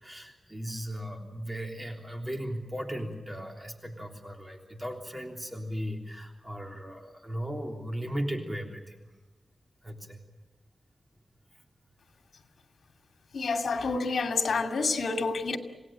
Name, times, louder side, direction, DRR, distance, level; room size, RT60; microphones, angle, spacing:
voice 1, 0.0-9.1 9.8-10.2, equal, 15° right, 3 dB, 3.4 m, -37 dB
voice 2, 13.3-15.6, left 4 dB, 75° left, 5 dB, 2.5 m, -28 dB
27.5 x 18.0 x 8.9 m, 1.2 s
wide cardioid pair, 90°, 0 cm